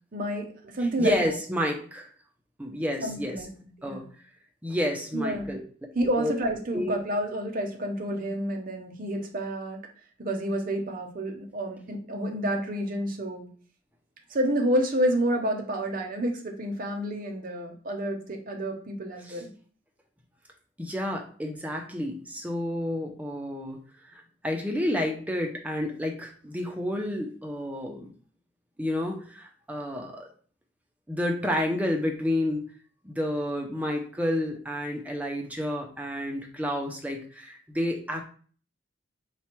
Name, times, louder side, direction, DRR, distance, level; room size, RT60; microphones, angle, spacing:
voice 1, 0.1-1.3 3.0-3.5 3.8-4.0 5.1-5.6 5.9-9.8 10.2-13.5 14.3-19.5, right 1 dB, 45° right, 2 dB, 0.7 m, -29 dB
voice 2, 0.8-2.1 2.6-3.4 3.8-4.0 4.6-5.6 6.2-6.3 6.7-6.9 19.2-19.4 20.8-23.8 24.1-28.1 28.8-30.3 31.1-32.6 33.0-38.2, left 1 dB, 10° right, 1 dB, 0.5 m, -30 dB
4.4 x 2.2 x 4.3 m, 0.44 s
head